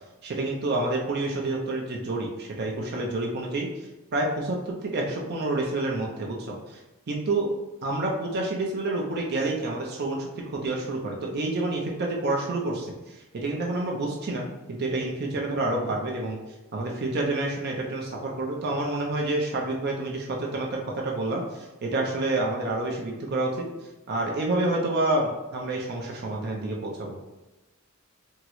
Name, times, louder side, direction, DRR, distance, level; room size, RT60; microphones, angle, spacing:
voice 1, 0.2-6.8 7.1-7.5 7.8-16.4 16.7-23.7 24.1-27.2, right 2 dB, 50° right, -1 dB, 0.4 m, -28 dB
3.5 x 2.0 x 3.0 m, 1.1 s
head